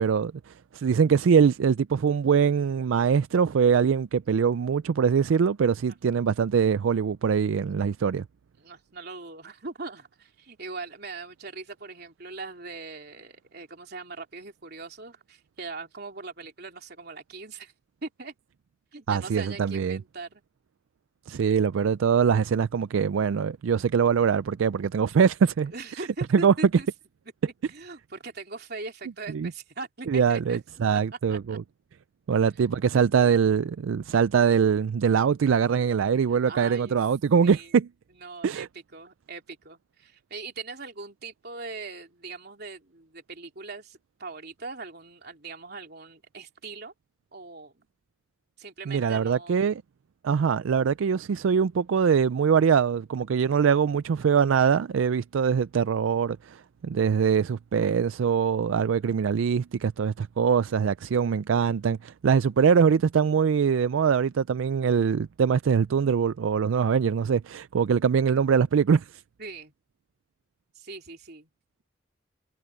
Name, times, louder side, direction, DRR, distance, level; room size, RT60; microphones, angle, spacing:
voice 1, 0.0-8.2 19.1-20.0 21.3-25.7 26.0-26.1 26.3-26.5 29.3-29.5 30.1-31.6 32.3-37.9 38.4-38.7 48.9-49.8 50.2-69.1, right 6 dB, 80° right, 0.4 m, -23 dB
voice 2, 8.6-17.7 18.0-18.3 18.9-20.4 25.7-26.9 27.4-30.6 31.3-31.6 36.5-37.0 37.4-37.7 38.1-46.9 47.3-47.9 48.6-49.7 69.4-69.7 70.7-71.5, right 3 dB, 55° right, 3.4 m, -41 dB
head